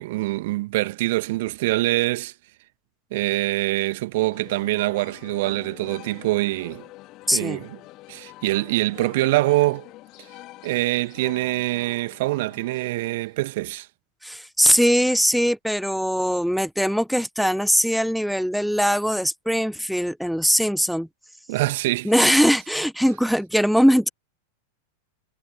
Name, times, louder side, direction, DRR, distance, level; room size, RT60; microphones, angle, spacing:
voice 1, 0.0-2.3 3.1-6.9 7.3-7.8 8.1-9.9 10.6-13.9 21.5-22.1, right 19 dB, 50° right, 2.1 m, -24 dB
sound 1, 4.3-13.5, left 18 dB, 40° left, 3.3 m, -45 dB
voice 2, 7.3-7.6 14.2-21.1 22.0-24.1, equal, ahead, 1.2 m, -21 dB
figure-of-eight pair, 90°, 0 cm